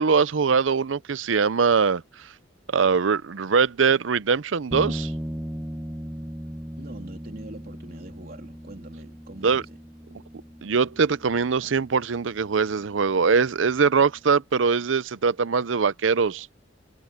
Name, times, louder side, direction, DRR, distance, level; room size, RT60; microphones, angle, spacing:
voice 1, 0.0-2.0 2.7-5.1 9.4-9.6 10.6-16.5, right 5 dB, 80° right, 0.6 m, -22 dB
sound 1, 4.7-14.2, equal, 10° right, 1.2 m, -38 dB
voice 2, 6.8-9.8, right 1 dB, 50° right, 3.3 m, -43 dB
head